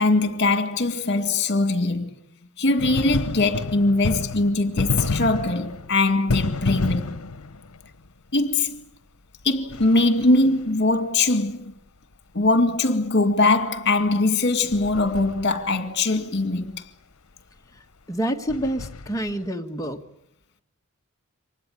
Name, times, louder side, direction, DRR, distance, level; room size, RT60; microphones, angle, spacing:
voice 1, 0.0-2.1 2.6-7.1 8.3-8.8 9.4-11.7 12.3-16.8, left 2 dB, 50° left, 2.1 m, -21 dB
sound 1, 2.8-8.1 9.7-10.7 14.7-15.8 18.5-19.5, left 3 dB, 75° left, 1.0 m, -29 dB
voice 2, 18.1-20.0, right 1 dB, 15° left, 1.7 m, -27 dB
25.0 x 19.5 x 9.9 m
head